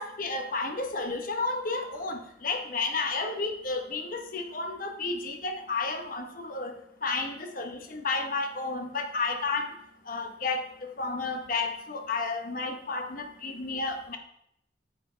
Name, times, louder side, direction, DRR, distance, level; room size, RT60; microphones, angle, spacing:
voice 1, 0.0-9.8 10.0-14.2, left 3 dB, 45° left, 4 dB, 1.0 m, -32 dB
8.4 x 7.2 x 3.3 m, 0.75 s
head